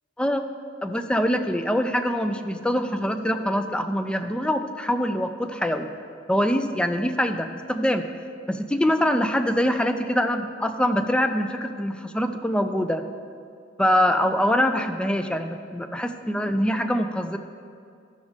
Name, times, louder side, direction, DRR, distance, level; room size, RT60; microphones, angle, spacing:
voice 1, 0.8-5.9 6.3-8.0 8.5-13.0 13.8-17.4, equal, 5° left, 8 dB, 0.3 m, -24 dB
13.0 x 6.2 x 3.6 m, 2.3 s
head